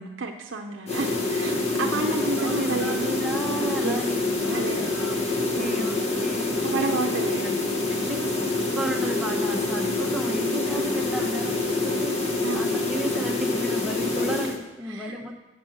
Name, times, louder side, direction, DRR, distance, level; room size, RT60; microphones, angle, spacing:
voice 1, 0.2-3.2 3.8-4.0 4.5-6.0 6.6-7.6 12.4-12.8 14.2-14.4 14.9-15.2, right 3 dB, 70° right, 3 dB, 0.6 m, -31 dB
sound 1, 0.9-14.6, left 2 dB, 30° left, 1.0 m, -26 dB
voice 2, 1.8-4.2 4.4-5.2 5.6-6.5 7.4-7.6 7.9-15.5, right 1 dB, ahead, 1 dB, 0.8 m, -33 dB
7.8 x 6.1 x 7.6 m, 1.1 s
head